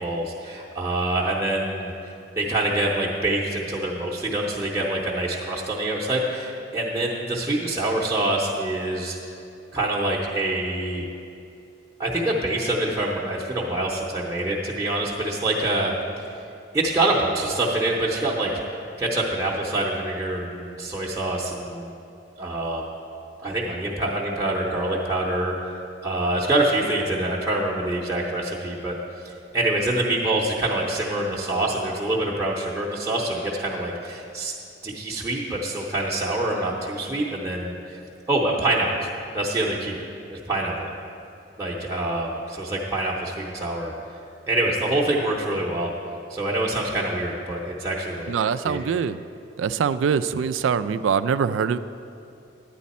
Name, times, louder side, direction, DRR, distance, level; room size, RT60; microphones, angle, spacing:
voice 1, 0.0-1.9 2.4-9.2 9.7-11.0 12.0-15.9 16.7-18.5 19.0-21.9 22.4-22.8 23.4-25.5 26.0-28.9 29.2-34.5 34.8-38.0 38.3-38.9 39.3-40.0 40.3-40.9 41.6-43.9 44.5-45.9 46.3-48.3 48.6-48.8, right 1 dB, 15° right, -5 dB, 0.7 m, -25 dB
voice 2, 48.3-49.2 49.6-51.8, right 6 dB, 80° right, 13 dB, 0.3 m, -23 dB
10.5 x 9.2 x 4.2 m, 2.7 s
head